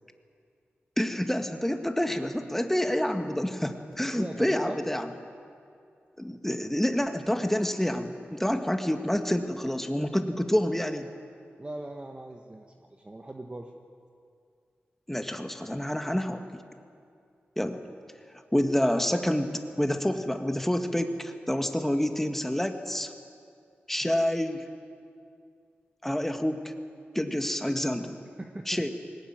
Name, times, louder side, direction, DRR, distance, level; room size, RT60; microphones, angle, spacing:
voice 1, 1.0-5.1 6.2-11.1 15.1-16.4 17.6-17.8 18.5-23.1 23.9-24.6 26.0-26.7 27.1-28.2 28.7-28.9, left 1 dB, 5° left, 5 dB, 1.9 m, -28 dB
voice 2, 4.1-4.8 11.6-12.7 13.0-13.7 24.0-24.1 28.4-28.8, right 1 dB, 25° right, 2 dB, 1.4 m, -40 dB
20.5 x 18.5 x 9.1 m, 2.4 s
cardioid pair, 60°, 4 cm